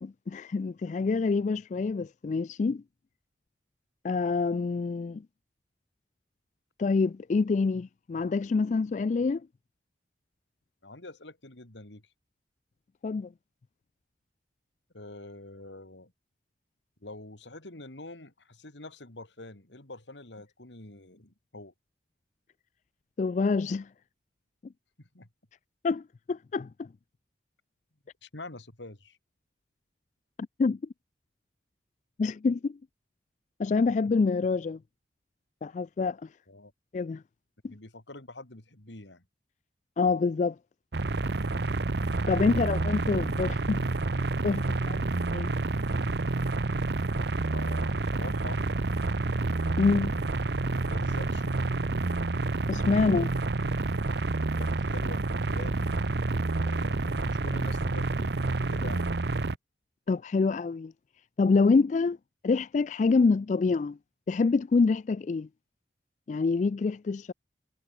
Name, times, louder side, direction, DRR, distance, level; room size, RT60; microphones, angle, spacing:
voice 1, 0.0-2.8 4.0-5.2 6.8-9.4 13.0-13.3 23.2-23.9 25.8-26.9 30.6-30.8 32.2-32.8 33.6-34.8 35.6-36.2 36.9-37.2 37.6-37.7 40.0-40.6 42.3-43.8 44.4-45.1 45.3-45.5 49.8-50.1 52.7-53.3 60.1-60.9 61.4-62.2 62.4-64.0 64.3-65.5 66.3-67.3, left 4 dB, 40° left, 0.3 m, -26 dB
voice 2, 10.8-12.0 14.9-16.1 17.0-21.7 25.0-25.3 28.2-29.2 36.5-36.7 37.7-39.2 47.2-48.6 50.0-50.3 50.7-51.6 54.5-56.0 56.6-59.1, left 2 dB, 80° left, 3.1 m, -45 dB
sound 1, 40.9-59.6, right 3 dB, 65° right, 0.8 m, -29 dB
head